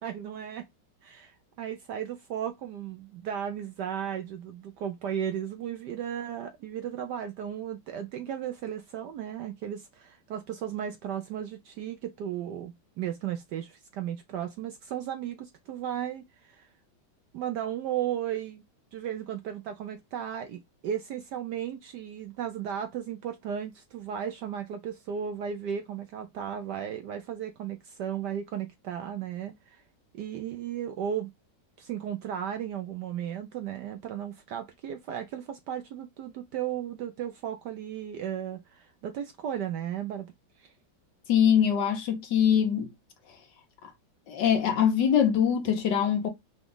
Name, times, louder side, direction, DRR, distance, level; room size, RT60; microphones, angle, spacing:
voice 1, 0.0-0.7 1.0-16.7 17.3-18.6 18.9-29.8 30.1-31.3 31.8-40.3 40.6-40.7, right 9 dB, 70° right, 1.0 m, -35 dB
voice 2, 41.3-42.9 44.3-46.3, left 8 dB, 65° left, 1.4 m, -23 dB
5.0 x 2.3 x 3.8 m
omnidirectional pair, 2.2 m